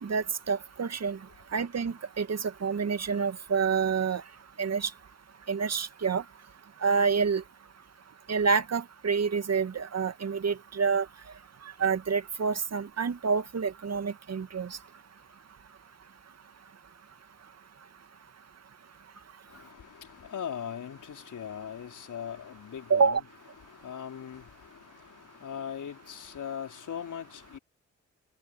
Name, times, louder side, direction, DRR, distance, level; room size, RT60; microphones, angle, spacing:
voice 1, 0.0-1.2 1.5-4.2 4.6-4.9 5.5-6.2 6.8-7.4 8.3-11.0 11.8-14.7 22.9-23.2, right 5 dB, 45° right, 2.4 m, -27 dB
voice 2, 19.5-23.2 23.6-27.6, left 8 dB, 60° left, 4.4 m, -40 dB
hypercardioid pair, 40°, 34 cm